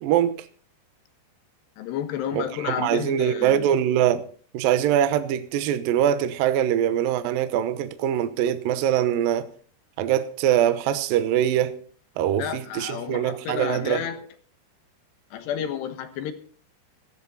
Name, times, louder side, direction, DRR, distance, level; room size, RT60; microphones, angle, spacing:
voice 1, 0.0-0.5 2.3-4.3 4.5-9.5 10.0-11.8 12.2-14.0, right 10 dB, 85° right, 2.0 m, -23 dB
voice 2, 1.8-3.7 12.4-14.3 15.3-16.3, left 9 dB, 70° left, 3.1 m, -31 dB
16.5 x 13.5 x 4.2 m
omnidirectional pair, 5.5 m